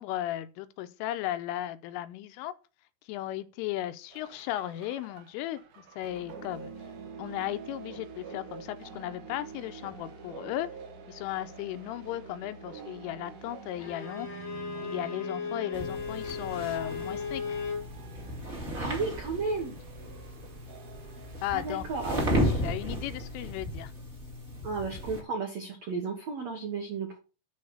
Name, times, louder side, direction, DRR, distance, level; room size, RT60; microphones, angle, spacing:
voice 1, 0.0-2.5 3.1-5.6 6.0-6.7 7.2-10.7 11.1-14.3 14.8-17.6 21.4-21.8 22.5-23.9, left 13 dB, 90° left, 3.2 m, -35 dB
sound 1, 4.1-22.2, right 5 dB, 60° right, 2.3 m, -47 dB
Bowed string instrument, 13.8-17.9, left 5 dB, 65° left, 1.2 m, -36 dB
sound 2, 15.7-25.2, equal, 20° right, 1.8 m, -34 dB
voice 2, 18.7-19.7 21.5-22.2 24.6-27.2, right 4 dB, 75° right, 1.5 m, -33 dB
10.5 x 4.2 x 6.5 m
omnidirectional pair, 5.7 m